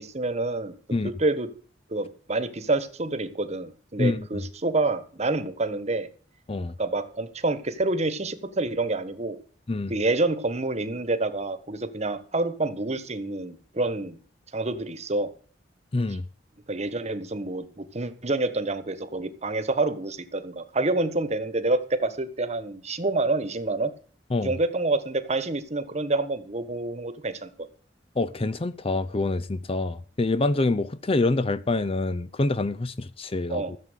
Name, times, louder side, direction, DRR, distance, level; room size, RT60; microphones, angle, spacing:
voice 1, 0.0-0.7 1.2-1.5 1.9-6.1 6.8-9.4 9.9-14.2 14.5-15.3 16.7-23.9 24.4-27.5 33.5-33.7, right 2 dB, 35° right, 1.3 m, -27 dB
voice 2, 15.9-16.2 24.3-24.5 28.2-33.8, left 2 dB, 30° left, 0.6 m, -26 dB
14.5 x 7.5 x 8.1 m
head